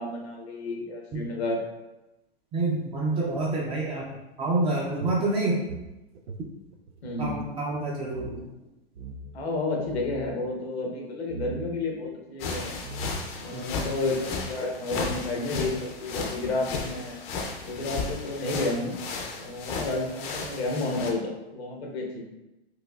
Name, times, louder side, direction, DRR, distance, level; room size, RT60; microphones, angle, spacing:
voice 1, 0.0-1.6 7.0-7.3 9.3-12.8 13.4-17.2 17.6-19.0 19.4-22.2, left 2 dB, 75° left, 0 dB, 1.0 m, -31 dB
voice 2, 2.5-5.6 7.2-8.5 13.5-13.9, right 2 dB, 15° right, -4 dB, 0.4 m, -28 dB
sound 1, 5.0-7.4 7.7-7.8 8.1-8.4 8.9-9.4 9.8-10.3 11.3-11.7 12.4-12.5 12.8-13.4, right 5 dB, 85° right, 0.5 m, -40 dB
sound 2, 12.4-21.1, left 4 dB, 35° left, 0.5 m, -34 dB
4.5 x 2.5 x 2.3 m, 0.98 s
hypercardioid pair, 120°, 32 cm